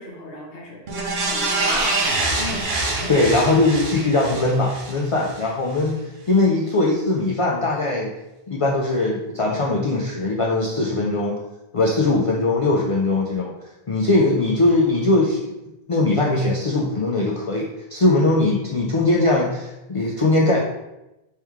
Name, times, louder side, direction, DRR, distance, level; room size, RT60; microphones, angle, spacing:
voice 1, 0.0-2.8, left 2 dB, 70° left, -1 dB, 1.0 m, -37 dB
sound 1, 0.9-5.4 5.8-5.9, right 2 dB, 70° right, 1.0 m, -25 dB
voice 2, 3.1-6.0 6.3-8.1 8.5-11.4 11.7-13.5 13.9-15.5 15.9-20.6, left 2 dB, 50° left, -3 dB, 0.4 m, -20 dB
3.2 x 3.1 x 3.5 m, 0.95 s
omnidirectional pair, 1.0 m